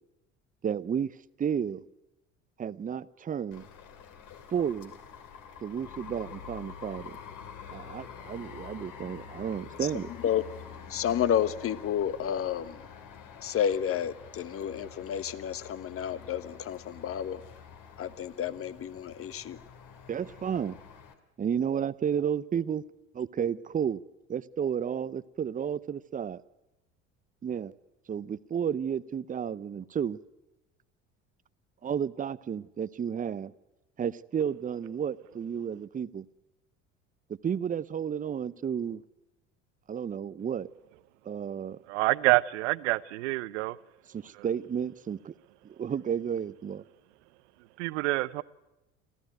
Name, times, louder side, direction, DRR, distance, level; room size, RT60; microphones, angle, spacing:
voice 1, 0.6-1.1 1.4-1.8 2.6-3.7 4.5-5.0 5.6-7.2 7.7-10.1 20.1-20.8 21.4-22.8 23.1-24.0 24.3-26.4 27.4-27.7 28.1-30.2 31.8-33.5 34.0-36.3 37.4-39.0 39.9-40.7 41.2-41.8 44.1-45.3 45.6-46.8, right 8 dB, 20° right, 0.7 m, -32 dB
sound 1, 3.5-21.1, left 7 dB, 55° left, 2.8 m, -47 dB
voice 2, 10.9-12.8 13.4-17.4 18.0-19.6, left 9 dB, 35° left, 1.2 m, -30 dB
voice 3, 41.9-43.8 47.8-48.4, right 21 dB, 65° right, 0.8 m, -27 dB
27.0 x 14.5 x 9.3 m
hypercardioid pair, 65°, 37 cm